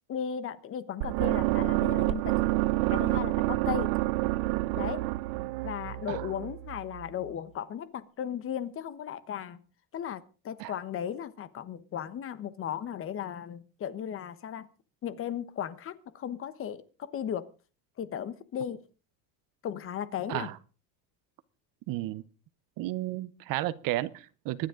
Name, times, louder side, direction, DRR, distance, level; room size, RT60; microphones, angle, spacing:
voice 1, 0.1-2.5 2.9-3.9 4.7-5.0 5.6-9.6 9.9-14.7 15.0-17.5 18.0-18.8 19.6-20.5, left 9 dB, 30° left, 1.1 m, -36 dB
sound 1, 1.0-7.1, right 19 dB, 80° right, 0.8 m, -28 dB
voice 2, 21.9-22.2 22.8-24.7, right 16 dB, 50° right, 0.9 m, -33 dB
24.0 x 10.0 x 3.8 m
cardioid pair, 155°, 42 cm